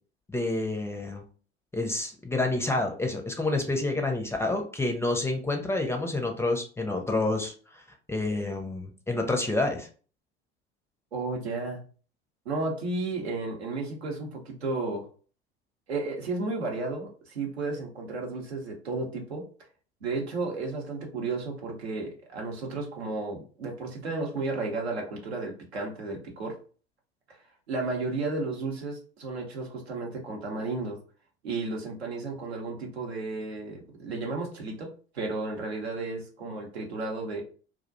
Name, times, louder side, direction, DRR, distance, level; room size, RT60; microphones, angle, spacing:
voice 1, 0.3-1.2 1.7-7.8 8.1-9.9, left 2 dB, 10° left, 3 dB, 0.4 m, -28 dB
voice 2, 11.1-11.8 12.5-15.1 15.9-19.5 20.0-26.6 27.3-27.4 27.7-31.0 31.4-37.4, right 3 dB, 90° right, 1 dB, 0.7 m, -33 dB
2.4 x 2.1 x 2.4 m, 0.39 s
hypercardioid pair, 75°, 31 cm